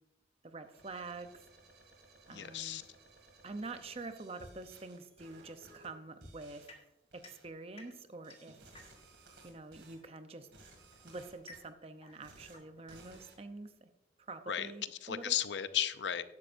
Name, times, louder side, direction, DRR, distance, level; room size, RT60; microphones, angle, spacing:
voice 1, 0.4-1.4 2.3-2.8 3.4-6.7 7.1-8.6 9.4-10.5 11.0-13.9 14.2-15.3, right 3 dB, 35° right, 9 dB, 0.7 m, -46 dB
sound 1, 0.6-5.9 6.2-6.7 7.1-7.5 8.2-10.0 10.4-11.6 12.1-12.6 12.9-13.4, right 2 dB, 80° right, 2.5 m, -58 dB
voice 2, 2.3-2.8 14.5-14.7 15.0-16.2, left 10 dB, 80° left, 12 dB, 0.6 m, -34 dB
sound 2, 6.7-9.3 10.3-13.7, left 2 dB, 35° left, 1.5 m, -58 dB
12.5 x 10.5 x 2.6 m, 0.96 s
head